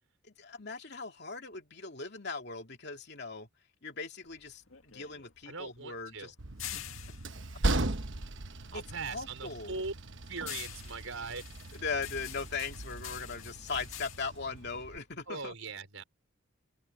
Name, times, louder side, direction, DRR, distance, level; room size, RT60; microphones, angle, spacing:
voice 1, 0.4-3.5 3.8-6.3 6.7-6.8 8.7-9.8 11.7-15.5, left 4 dB, 50° left, 2.7 m, -39 dB
sound 1, 4.2-8.7 9.1-15.5, left 12 dB, 75° left, 2.0 m, -47 dB
voice 2, 5.5-6.3 8.7-9.9 10.3-11.4 15.3-16.0, right 4 dB, 75° right, 4.8 m, -40 dB
Train, 6.4-15.0, right 2 dB, 60° right, 1.2 m, -38 dB
head